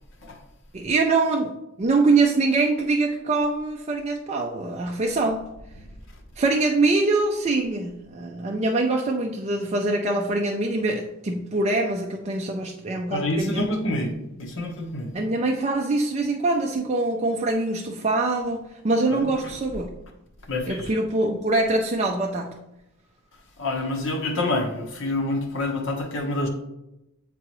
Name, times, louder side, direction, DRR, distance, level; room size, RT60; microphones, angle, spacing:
voice 1, 0.7-5.5 6.4-13.7 15.1-19.9 20.7-22.5, right 3 dB, 30° right, 1 dB, 0.4 m, -24 dB
voice 2, 13.1-14.1 14.4-15.1 19.1-19.3 20.5-20.9 23.6-26.5, left 1 dB, 65° left, 2 dB, 1.1 m, -27 dB
8.3 x 3.7 x 3.0 m, 0.92 s
head